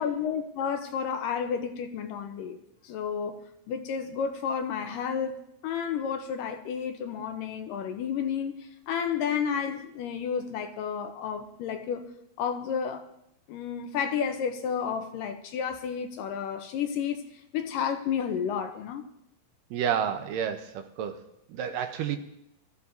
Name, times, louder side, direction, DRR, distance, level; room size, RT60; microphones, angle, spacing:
voice 1, 0.0-3.4 3.7-12.1 12.4-13.0 13.5-17.2 17.5-19.0, left 7 dB, 75° left, 6 dB, 2.2 m, -31 dB
voice 2, 19.7-22.2, right 9 dB, 80° right, 7 dB, 2.3 m, -30 dB
24.0 x 14.0 x 2.6 m, 0.78 s
omnidirectional pair, 4.2 m